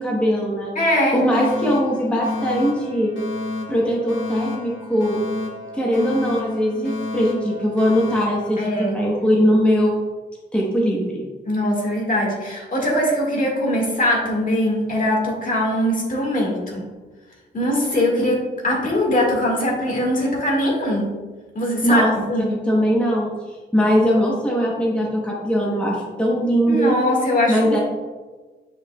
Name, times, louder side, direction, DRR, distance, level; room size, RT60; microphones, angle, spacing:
voice 1, 0.0-0.7 1.1-3.1 3.7-5.2 5.7-10.0 10.5-11.2 21.8-22.1 22.5-23.3 23.7-26.9 27.5-27.8, equal, 5° left, -4 dB, 1.0 m, -20 dB
voice 2, 0.8-1.2 8.6-9.0 11.5-16.9 17.5-21.1 21.6-22.0 22.3-22.5 26.7-27.8, left 1 dB, 45° left, -2 dB, 1.8 m, -21 dB
Alarm, 1.3-9.3, left 2 dB, 80° left, 1.5 m, -31 dB
7.4 x 5.6 x 2.3 m, 1.3 s
wide cardioid pair, 115°, 19 cm